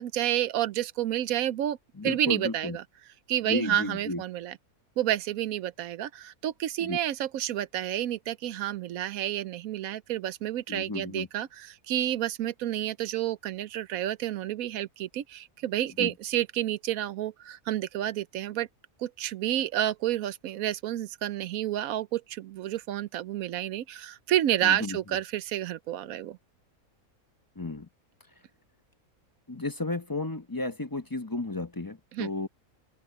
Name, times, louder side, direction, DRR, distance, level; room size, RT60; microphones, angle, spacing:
voice 1, 0.0-1.8 2.0-2.8 3.3-4.6 5.0-18.7 19.0-26.4 32.1-32.3, right 12 dB, 75° right, 1.0 m, -30 dB
voice 2, 2.0-2.8 3.4-4.2 6.8-7.0 10.7-11.3 16.0-16.1 24.6-25.0 27.6-27.9 29.5-32.5, left 2 dB, 20° left, 0.7 m, -33 dB
open air
omnidirectional pair, 1.5 m